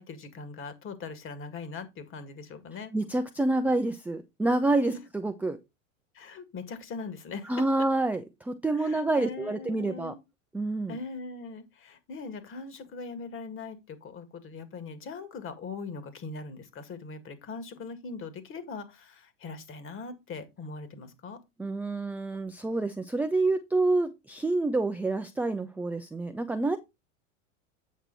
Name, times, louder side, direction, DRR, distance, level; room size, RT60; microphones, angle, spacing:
voice 1, 0.0-2.9 4.9-5.0 6.1-7.5 8.7-10.2 10.9-21.4, left 4 dB, 35° left, 2.0 m, -41 dB
voice 2, 2.9-4.9 5.2-5.6 7.5-10.1 10.5-11.0 21.6-26.8, right 2 dB, 5° right, 0.5 m, -27 dB
8.3 x 5.9 x 4.0 m
supercardioid pair, 120°, 38 cm